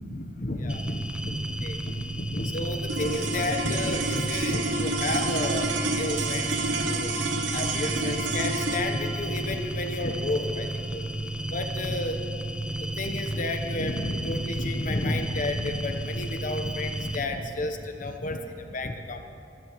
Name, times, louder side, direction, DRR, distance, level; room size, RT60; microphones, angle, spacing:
voice 1, 0.1-7.1 7.5-11.0 11.5-12.2 12.6-19.2, left 2 dB, 45° left, 5 dB, 1.0 m, -31 dB
sound 1, 0.7-17.2, right 1 dB, 5° right, 0.8 m, -33 dB
sound 2, 2.9-13.3, right 3 dB, 85° right, 1.1 m, -30 dB
26.5 x 13.0 x 3.1 m, 2.6 s
head